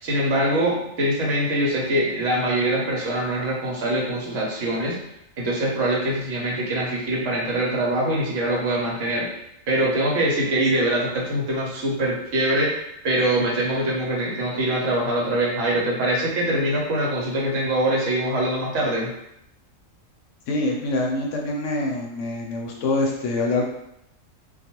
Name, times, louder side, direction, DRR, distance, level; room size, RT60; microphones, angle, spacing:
voice 1, 0.0-5.0 5.4-9.3 9.7-19.1, right 1 dB, 70° right, -3 dB, 1.1 m, -23 dB
voice 2, 20.5-23.6, left 2 dB, 75° left, 0 dB, 0.9 m, -25 dB
2.3 x 2.3 x 2.8 m, 0.80 s
omnidirectional pair, 1.4 m